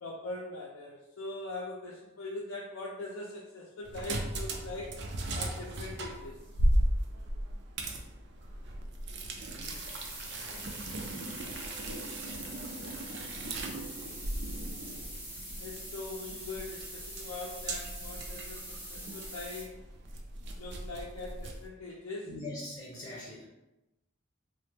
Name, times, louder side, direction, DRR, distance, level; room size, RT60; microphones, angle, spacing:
voice 1, 0.0-5.0 5.3-6.4 15.6-19.8 20.6-22.3, left 2 dB, 75° left, -3 dB, 0.4 m, -41 dB
sound 1, 3.8-21.7, right 1 dB, 55° right, 0.4 m, -36 dB
sound 2, 9.6-19.6, right 1 dB, 10° right, 0.6 m, -44 dB
voice 2, 22.3-23.4, left 1 dB, 35° left, -6 dB, 0.7 m, -41 dB
3.3 x 2.0 x 3.2 m, 0.96 s
head